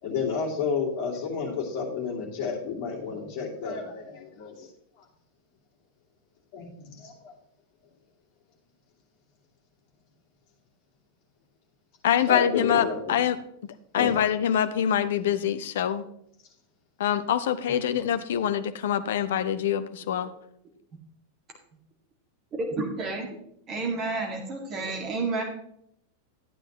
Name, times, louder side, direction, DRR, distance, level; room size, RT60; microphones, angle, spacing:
voice 1, 0.0-4.7 5.0-5.1 6.5-7.3 12.3-13.0 13.9-14.1, left 5 dB, 45° left, -2 dB, 2.7 m, -31 dB
voice 2, 12.0-13.4 13.6-16.1 17.0-20.3, left 9 dB, 60° left, 12 dB, 0.6 m, -25 dB
voice 3, 22.5-23.3 23.7-25.4, right 3 dB, 30° right, 2 dB, 2.0 m, -30 dB
12.5 x 9.0 x 3.0 m, 0.72 s
figure-of-eight pair, 90°, 0 cm